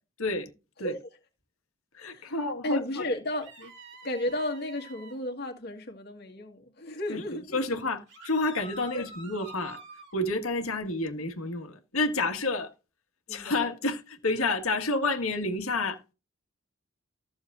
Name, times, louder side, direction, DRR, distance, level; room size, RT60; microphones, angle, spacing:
voice 1, 0.2-0.5 0.8-1.0 1.9-3.1 7.1-7.2 7.5-9.8 10.1-12.7 13.3-16.1, left 2 dB, 80° left, 1.8 m, -29 dB
voice 2, 2.1-3.5 4.0-7.6 8.9-9.0 13.3-13.6, left 1 dB, 45° left, 1.9 m, -33 dB
sound 1, 3.4-5.2 8.1-10.1, right 3 dB, 55° right, 2.5 m, -47 dB
14.5 x 7.0 x 2.6 m
head